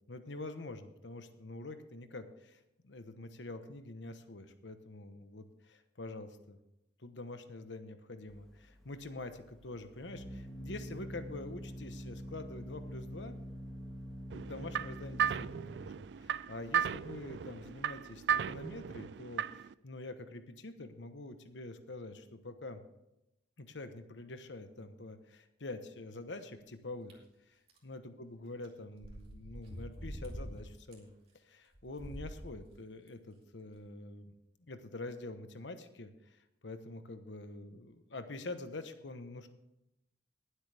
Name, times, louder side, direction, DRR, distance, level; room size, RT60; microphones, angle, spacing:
voice 1, 0.1-6.6 7.0-13.4 14.3-22.8 23.6-27.2 27.8-34.3 34.7-39.5, left 2 dB, 90° left, 9 dB, 1.1 m, -46 dB
Organ, 8.3-18.8, equal, ahead, 1.5 m, -46 dB
sound 1, 14.3-19.7, right 8 dB, 70° right, 0.3 m, -36 dB
sound 2, 27.1-27.2 27.7-27.8 28.6-28.7 29.0-30.5 30.9-31.0 31.7-32.5 33.1-33.2 33.7-33.8, equal, 35° right, 2.6 m, -44 dB
19.5 x 8.0 x 3.5 m, 0.86 s
head